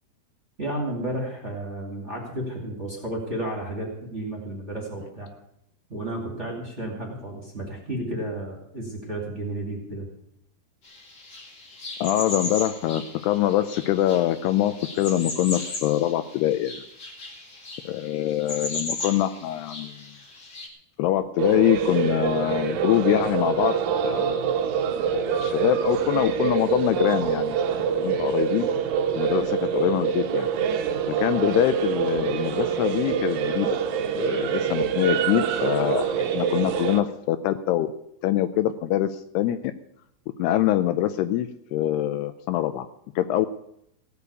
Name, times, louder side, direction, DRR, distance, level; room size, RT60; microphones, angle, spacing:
voice 1, 0.6-5.3 5.9-10.1, right 1 dB, 20° right, -2 dB, 2.1 m, -32 dB
sound 1, 10.8-20.7, left 2 dB, 35° left, 2.0 m, -37 dB
voice 2, 12.0-16.8 17.9-20.0 21.0-23.8 24.0-24.5 25.1-27.6 28.0-28.7 29.1-30.5 31.1-33.7 34.1-37.9 38.2-39.7 40.4-42.9 43.2-43.5, left 13 dB, 80° left, 11 dB, 2.5 m, -24 dB
sound 2, 21.4-37.0, right 7 dB, 80° right, 1.7 m, -25 dB
16.5 x 7.0 x 8.2 m, 0.75 s
omnidirectional pair, 4.9 m